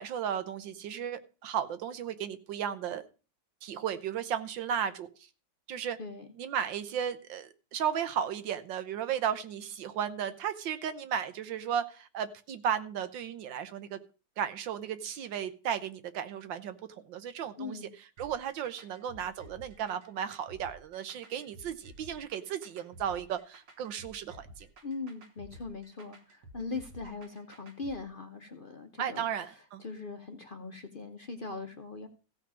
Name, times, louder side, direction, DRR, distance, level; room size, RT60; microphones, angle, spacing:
voice 1, 0.0-3.1 3.6-5.1 5.7-6.0 6.4-14.0 14.4-16.8 17.0-17.8 18.2-24.7 29.0-29.8, right 8 dB, 90° right, 1.7 m, -34 dB
voice 2, 17.6-17.9 24.8-32.1, left 3 dB, 45° left, 0.7 m, -41 dB
sound 1, 18.2-28.0, right 1 dB, 65° right, 1.8 m, -53 dB
15.0 x 5.2 x 6.1 m
omnidirectional pair, 2.0 m